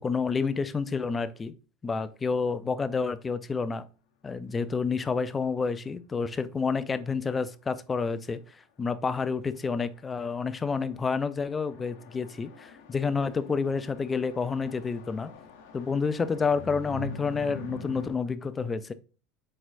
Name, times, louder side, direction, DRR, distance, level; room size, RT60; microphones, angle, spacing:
voice 1, 0.0-1.5 1.8-3.9 4.2-8.4 8.8-15.3 15.7-18.9, left 5 dB, 15° left, 0.3 m, -29 dB
sound 1, 9.9-10.0 10.2-10.7 11.1-18.1, left 3 dB, 85° left, 0.8 m, -44 dB
4.4 x 4.2 x 2.6 m
supercardioid pair, 145°, 0 cm